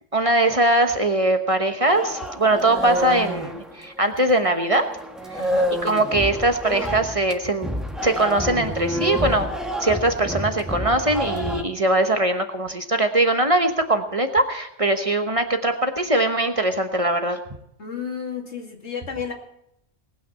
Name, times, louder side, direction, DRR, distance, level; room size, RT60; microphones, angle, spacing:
voice 1, 0.1-4.8 5.8-7.8 8.0-9.5 9.8-17.4, right 1 dB, 30° right, 6 dB, 1.1 m, -21 dB
sound 1, 1.9-4.4 4.8-11.6, equal, ahead, 1.3 m, -28 dB
voice 2, 5.3-5.7 17.8-19.3, left 6 dB, 75° left, 2 dB, 2.6 m, -32 dB
19.0 x 9.3 x 5.7 m, 0.77 s
omnidirectional pair, 1.2 m